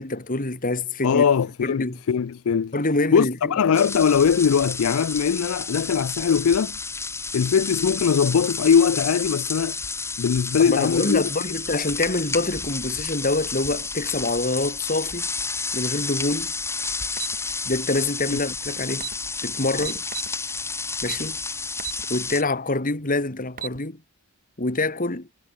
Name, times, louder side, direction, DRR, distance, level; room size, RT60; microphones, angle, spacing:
voice 1, 0.0-1.2 1.6-2.0 2.7-3.5 10.6-15.3 15.7-16.5 17.7-19.1 19.4-20.0 21.0-21.4 22.1-24.0 24.6-25.3, left 2 dB, 40° left, 2.1 m, -26 dB
voice 2, 1.0-2.7 3.1-6.8 7.3-9.8 10.2-11.2 18.3-18.4, left 6 dB, 75° left, 0.4 m, -21 dB
sound 1, 3.7-22.4, left 4 dB, 10° left, 1.4 m, -31 dB
sound 2, 17.2-17.4 18.6-18.7 18.9-19.2 19.8-20.3 21.0-21.3 21.8-22.0 22.5-22.6 23.3-23.8, right 10 dB, 40° right, 1.0 m, -33 dB
head